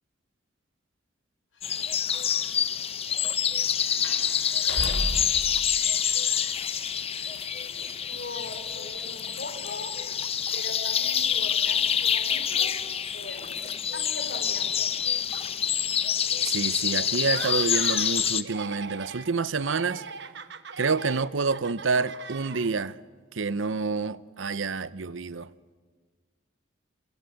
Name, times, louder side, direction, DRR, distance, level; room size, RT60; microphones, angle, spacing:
sound 1, 1.6-5.4, equal, 85° left, 7.3 m, -36 dB
sound 2, 1.6-18.4, left 8 dB, 30° left, 0.7 m, -27 dB
voice 1, 7.7-9.9 10.5-13.6 13.9-14.9, left 2 dB, 60° left, 4.5 m, -41 dB
voice 2, 16.4-20.0 20.8-23.0 23.3-25.5, right 4 dB, 80° right, 0.7 m, -28 dB
Laughter, 17.2-18.1 18.4-19.3 19.6-22.9, right 5 dB, 60° right, 1.1 m, -39 dB
27.5 x 24.0 x 8.2 m
head